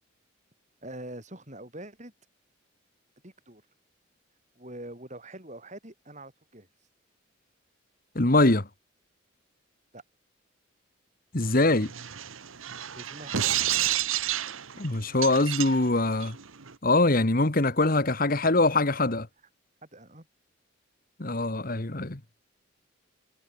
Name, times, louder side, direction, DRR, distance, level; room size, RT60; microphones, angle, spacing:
voice 1, 0.8-2.1 3.2-3.6 4.5-6.7 9.9-10.0 12.9-13.5 19.8-20.3, right 1 dB, 35° right, 6.7 m, -44 dB
voice 2, 8.1-8.7 11.3-11.9 14.8-16.4 16.8-19.3 21.2-22.2, left 2 dB, 45° left, 1.6 m, -23 dB
sound 1, 11.4-16.7, right 11 dB, 85° right, 1.3 m, -31 dB
head